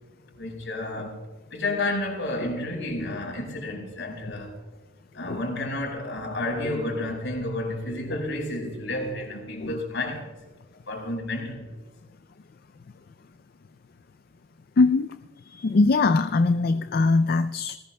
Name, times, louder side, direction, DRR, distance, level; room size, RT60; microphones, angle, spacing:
voice 1, 0.4-1.2 1.5-4.5 5.1-10.3 10.9-11.7, left 2 dB, 60° left, 4.8 m, -31 dB
voice 2, 14.8-15.1 15.4-17.8, left 3 dB, 45° left, 0.4 m, -21 dB
20.0 x 19.0 x 2.2 m
head